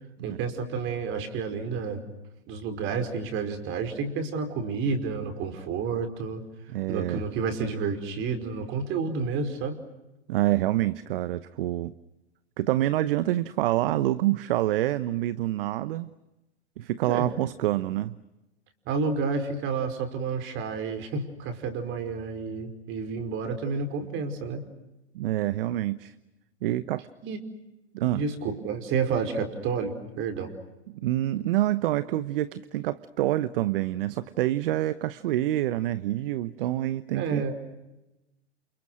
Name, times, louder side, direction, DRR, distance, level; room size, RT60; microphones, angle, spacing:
voice 1, 0.2-2.0 2.5-6.4 6.9-9.8 17.1-17.3 18.8-24.6 27.2-27.4 28.1-30.5 37.1-37.5, right 5 dB, 40° right, 8 dB, 5.0 m, -30 dB
voice 2, 6.7-7.2 10.3-11.9 12.6-16.1 16.8-18.1 25.1-26.1 26.6-27.1 27.9-28.2 30.9-37.5, right 14 dB, 55° right, 15 dB, 1.0 m, -27 dB
29.0 x 28.5 x 6.2 m, 0.97 s
hypercardioid pair, 110°, 33 cm